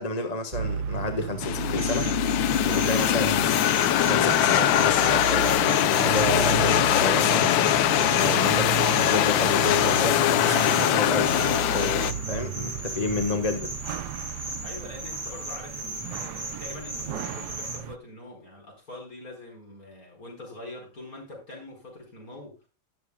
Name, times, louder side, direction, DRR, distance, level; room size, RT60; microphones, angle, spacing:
voice 1, 0.0-2.1 2.6-3.6 3.9-7.6 8.2-13.7, left 3 dB, 25° left, 1.1 m, -30 dB
sound 1, 0.5-18.0, right 8 dB, 70° right, 1.1 m, -33 dB
sound 2, 1.4-12.1, left 12 dB, 80° left, 1.3 m, -22 dB
sound 3, 1.8-17.8, right 1 dB, 35° right, 4.8 m, -37 dB
voice 2, 14.6-22.7, left 2 dB, 45° left, 5.3 m, -43 dB
18.0 x 7.1 x 2.2 m
omnidirectional pair, 2.1 m